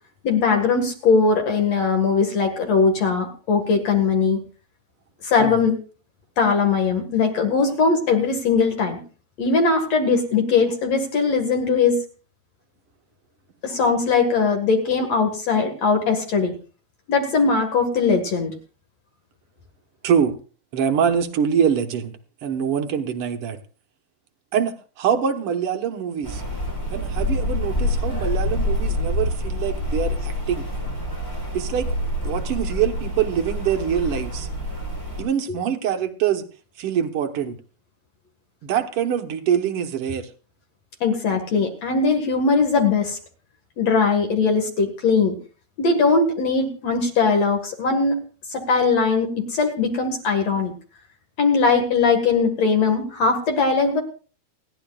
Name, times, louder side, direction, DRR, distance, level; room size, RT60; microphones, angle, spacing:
voice 1, 0.2-4.4 5.2-5.8 6.4-9.0 9.4-12.0 13.6-16.6 17.1-18.5 41.0-43.2 43.8-45.4 45.8-48.2 48.5-50.7 51.4-54.0, left 4 dB, 50° left, 4 dB, 2.5 m, -20 dB
voice 2, 20.0-20.4 20.7-23.6 24.5-26.4 26.9-30.6 31.5-31.9 32.2-34.5 35.2-36.4 36.8-37.6 38.6-40.3, right 8 dB, 75° right, 4 dB, 1.3 m, -24 dB
Rain, 26.2-35.2, left 1 dB, 5° left, 6.0 m, -26 dB
29.5 x 10.5 x 2.4 m, 0.38 s
omnidirectional pair, 4.5 m